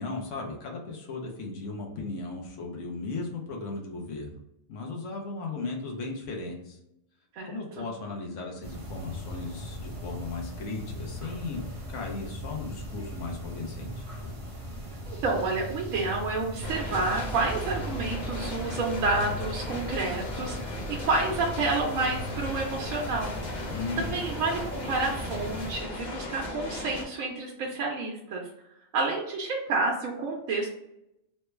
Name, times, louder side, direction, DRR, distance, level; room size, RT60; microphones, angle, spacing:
voice 1, 0.0-4.4 4.7-6.8 7.4-11.6 11.9-14.0 23.7-24.1, left 3 dB, 70° left, 0 dB, 1.0 m, -36 dB
voice 2, 7.3-7.9 15.1-23.3 24.0-28.4 28.9-30.7, right 3 dB, 80° right, -1 dB, 1.0 m, -29 dB
sound 1, 8.6-25.8, equal, 30° right, 0.7 m, -38 dB
sound 2, 16.6-27.0, left 1 dB, 45° left, 0.7 m, -37 dB
3.2 x 2.1 x 3.1 m, 0.83 s
omnidirectional pair, 1.4 m